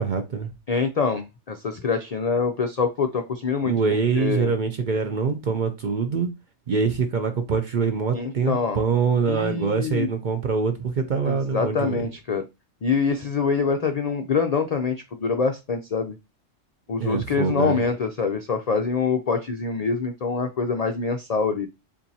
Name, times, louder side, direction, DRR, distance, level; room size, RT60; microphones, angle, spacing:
voice 1, 0.0-0.5 3.6-6.3 6.7-12.0 17.0-17.8, right 5 dB, 55° right, 0.6 m, -24 dB
voice 2, 0.7-3.7 4.2-4.5 8.1-8.8 9.3-10.1 11.3-12.4 12.8-16.2 16.9-21.7, left 5 dB, 60° left, 0.4 m, -25 dB
7.1 x 2.6 x 2.7 m
omnidirectional pair, 1.3 m